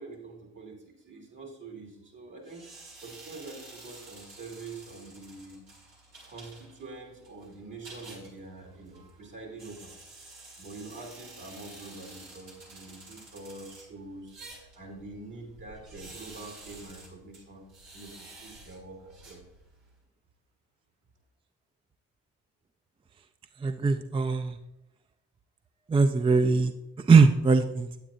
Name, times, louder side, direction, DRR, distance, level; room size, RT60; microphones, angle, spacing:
voice 1, 0.0-2.7 3.0-5.6 6.3-9.9 10.6-17.6 17.9-18.1 18.4-19.4, right 3 dB, 60° right, 0 dB, 3.0 m, -45 dB
sound 1, 2.4-19.9, right 2 dB, 80° right, 2.0 m, -50 dB
voice 2, 23.6-24.6 25.9-26.7 27.0-27.9, right 4 dB, 15° right, 10 dB, 0.4 m, -21 dB
8.8 x 8.6 x 2.6 m, 0.91 s
supercardioid pair, 50°, 35 cm